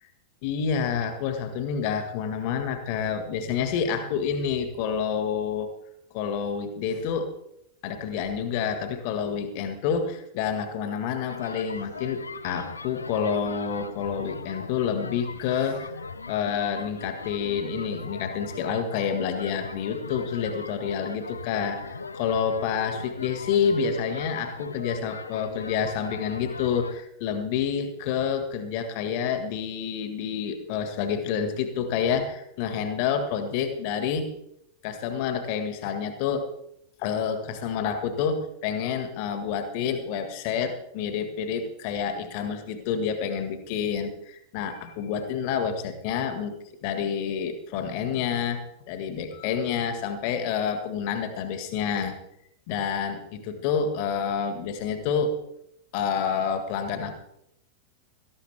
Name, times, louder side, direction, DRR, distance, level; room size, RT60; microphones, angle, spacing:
voice 1, 0.4-5.7 6.1-7.3 7.8-34.3 34.8-36.5 37.0-46.5 46.8-52.2 52.7-55.4 55.9-57.1, left 7 dB, 45° left, 8 dB, 1.8 m, -28 dB
sound 1, 11.3-27.0, left 4 dB, 75° left, 0.8 m, -39 dB
17.5 x 14.5 x 3.5 m, 0.79 s
figure-of-eight pair, 90°, 0 cm